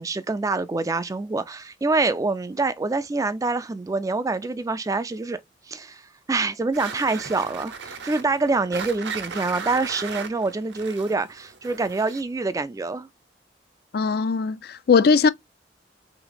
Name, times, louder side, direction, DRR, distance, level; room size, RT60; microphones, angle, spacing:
voice 1, 0.0-5.4 5.7-6.0 6.3-13.1, right 3 dB, 20° right, 0.3 m, -26 dB
sound 1, 6.7-12.4, right 5 dB, 75° right, 0.7 m, -36 dB
voice 2, 13.9-15.3, left 5 dB, 55° left, 0.4 m, -19 dB
3.4 x 2.9 x 4.0 m
head